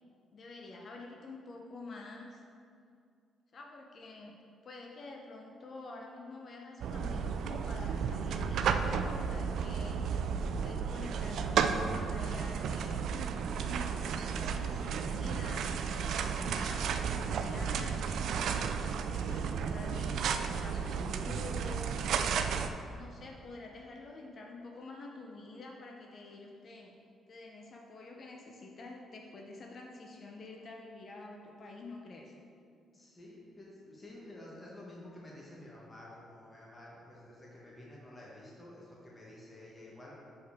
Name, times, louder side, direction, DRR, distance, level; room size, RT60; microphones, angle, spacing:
voice 1, 0.3-2.4 3.5-4.4 4.6-10.0 10.6-13.1 14.1-18.0 19.1-22.0 22.4-22.7 22.9-26.9 27.3-32.3, left 2 dB, 50° left, 1 dB, 0.6 m, -48 dB
sound 1, 6.8-22.7, right 6 dB, 75° right, 0.3 m, -33 dB
voice 2, 32.9-40.1, left 1 dB, 25° left, -5 dB, 1.2 m, -51 dB
6.3 x 4.7 x 3.5 m, 2.4 s
cardioid pair, 90°, 0 cm